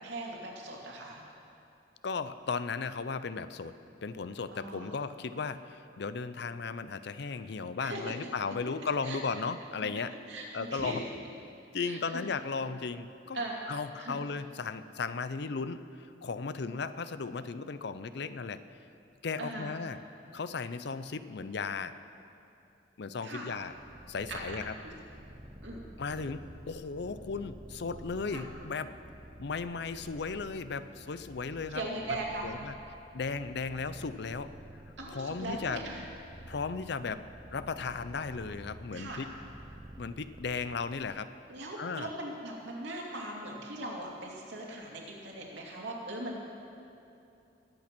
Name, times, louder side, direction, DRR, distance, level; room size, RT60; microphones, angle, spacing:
voice 1, 0.0-1.2 4.5-4.9 7.8-8.1 9.0-9.2 10.3-11.0 11.8-12.0 13.3-14.2 19.4-19.7 23.2-23.5 24.3-24.9 25.6-25.8 28.3-28.4 31.7-32.5 35.0-36.0 38.9-39.2 41.5-46.4, right 1 dB, 70° right, -2 dB, 2.7 m, -39 dB
voice 2, 2.0-3.7 4.0-10.1 10.5-11.1 11.7-13.4 13.7-18.6 19.2-20.0 20.3-21.9 23.0-23.7 24.1-24.7 26.0-28.9 29.4-31.8 32.4-32.7 33.1-34.5 35.1-35.8 36.5-37.3 37.5-39.3 40.0-41.3 41.8-42.1, left 4 dB, 60° left, 13 dB, 0.5 m, -36 dB
Purr, 23.6-41.3, right 1 dB, 25° right, 0.7 m, -50 dB
21.0 x 8.6 x 6.1 m, 2.7 s
head